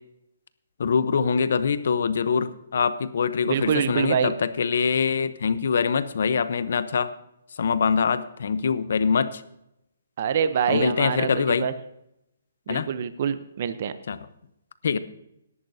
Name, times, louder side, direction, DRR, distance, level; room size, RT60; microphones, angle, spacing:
voice 1, 0.8-7.1 7.6-9.4 10.7-11.7 12.7-12.9 14.1-14.2 14.8-15.0, left 6 dB, 65° left, 14 dB, 0.8 m, -24 dB
voice 2, 3.5-4.3 10.2-11.7 12.7-13.9, right 7 dB, 45° right, 12 dB, 0.7 m, -25 dB
17.0 x 11.0 x 2.7 m, 0.81 s
hypercardioid pair, 160°, 0 cm